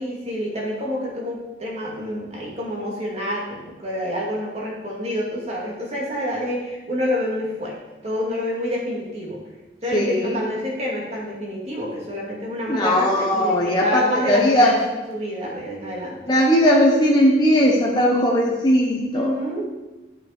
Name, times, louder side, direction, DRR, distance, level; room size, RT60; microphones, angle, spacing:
voice 1, 0.0-7.7 8.0-9.4 9.8-14.8 15.1-16.2 19.1-19.6, equal, 35° right, -4 dB, 2.5 m, -28 dB
voice 2, 9.9-10.4 12.7-14.8 15.4-15.5 16.3-19.3, equal, 25° left, -4 dB, 1.1 m, -18 dB
12.0 x 6.4 x 4.4 m, 1.1 s
head